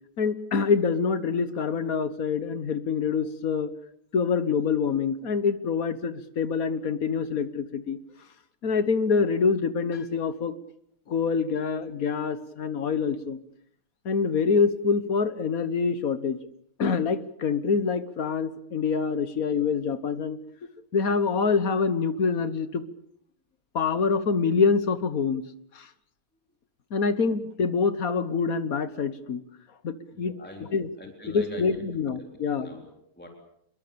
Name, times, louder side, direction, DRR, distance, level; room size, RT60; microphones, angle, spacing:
voice 1, 0.2-3.7 4.1-8.0 8.6-10.5 11.1-13.4 14.0-16.4 16.8-20.4 20.9-22.8 23.7-25.4 25.7-25.9 26.9-29.4 29.8-30.3 30.7-30.9 31.3-32.7, left 5 dB, 60° left, 13 dB, 1.7 m, -25 dB
voice 2, 30.1-30.7 31.0-33.3, left 1 dB, 5° left, 2 dB, 3.7 m, -44 dB
26.5 x 22.0 x 6.9 m, 0.71 s
omnidirectional pair, 1.8 m